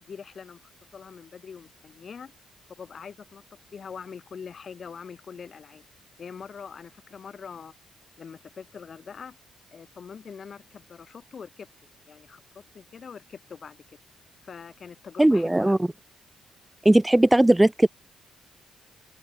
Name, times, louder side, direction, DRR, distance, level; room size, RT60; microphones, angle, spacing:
voice 1, 0.0-2.3 2.8-3.4 3.7-5.8 6.2-7.7 8.2-9.4 9.7-11.7 12.1-14.0 14.4-15.8, left 6 dB, 45° left, 3.8 m, -43 dB
voice 2, 15.2-15.8 16.8-17.9, right 1 dB, 10° right, 0.3 m, -18 dB
cardioid pair, 90°, 0 cm